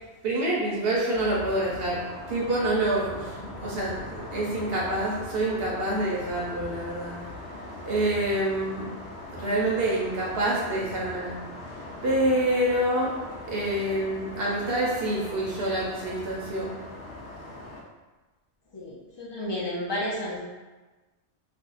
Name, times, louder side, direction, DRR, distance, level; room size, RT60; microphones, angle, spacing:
voice 1, 0.2-2.0 2.3-7.1 7.9-8.9 9.3-11.3 12.0-13.1 13.5-16.7, right 1 dB, 65° right, -5 dB, 0.9 m, -27 dB
sound 1, 1.1-17.8, left 2 dB, 70° left, 0.8 m, -41 dB
voice 2, 18.7-20.4, left 1 dB, 35° left, -6 dB, 0.4 m, -32 dB
2.5 x 2.2 x 3.9 m, 1.2 s
omnidirectional pair, 1.2 m